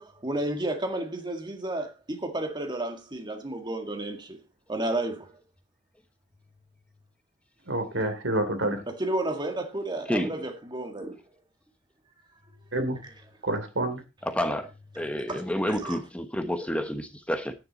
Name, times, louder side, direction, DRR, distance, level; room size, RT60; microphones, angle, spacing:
voice 1, 0.0-4.4 4.7-5.3 8.9-11.2 13.0-13.1 15.3-15.4 15.7-16.0, right 1 dB, 25° right, 1.9 m, -32 dB
voice 2, 7.7-8.8 12.7-13.0 13.4-14.0, right 1 dB, 80° right, 3.0 m, -28 dB
voice 3, 14.2-14.7 14.9-17.5, equal, 5° left, 1.1 m, -29 dB
10.5 x 9.8 x 4.1 m
head